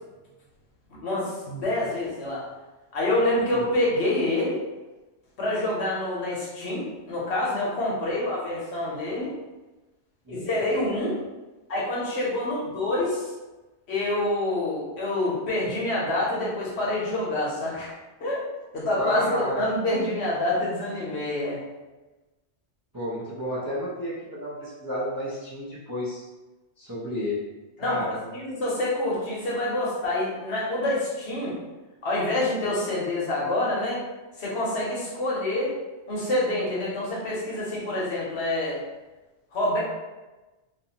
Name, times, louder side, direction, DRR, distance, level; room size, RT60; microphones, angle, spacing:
voice 1, 0.9-2.4 2.9-4.6 5.4-9.3 10.3-11.2 11.7-13.3 13.9-17.9 18.2-18.4 18.7-21.6 27.8-28.0 28.3-31.6 32.0-34.0 34.4-35.7 36.1-38.8 39.5-39.8, left 1 dB, 65° left, -5 dB, 1.0 m, -27 dB
voice 2, 19.0-19.7 22.9-26.2 26.8-27.4 27.8-28.3, equal, 30° right, -9 dB, 0.4 m, -31 dB
2.5 x 2.5 x 2.8 m, 1.1 s
omnidirectional pair, 1.2 m